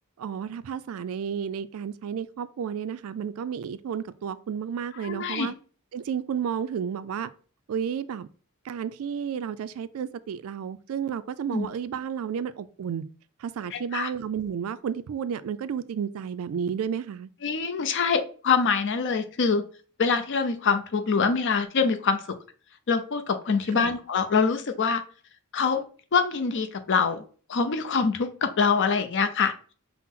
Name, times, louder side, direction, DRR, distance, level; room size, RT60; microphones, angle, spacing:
voice 1, 0.2-5.5 5.9-7.3 7.7-8.3 8.6-13.0 13.4-17.3 23.7-23.9, right 7 dB, 70° right, 0.3 m, -32 dB
voice 2, 5.0-5.5 11.5-11.7 13.7-14.1 17.4-19.6 20.0-22.2 22.9-25.0 25.5-25.8 26.1-27.2 27.5-29.7, left 5 dB, 55° left, 0.5 m, -24 dB
5.8 x 2.0 x 3.6 m
head